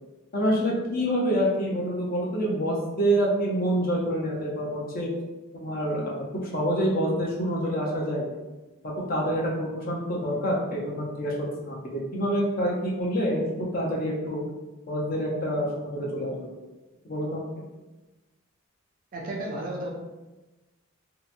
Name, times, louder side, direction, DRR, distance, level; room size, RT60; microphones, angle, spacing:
voice 1, 0.3-5.1 5.5-8.2 8.8-11.3 11.6-13.4 13.7-14.4 14.9-16.5 17.0-17.5, equal, 40° left, -3 dB, 0.6 m, -27 dB
voice 2, 19.1-19.9, right 1 dB, 40° right, -2 dB, 0.5 m, -33 dB
2.8 x 2.1 x 2.5 m, 1.1 s
head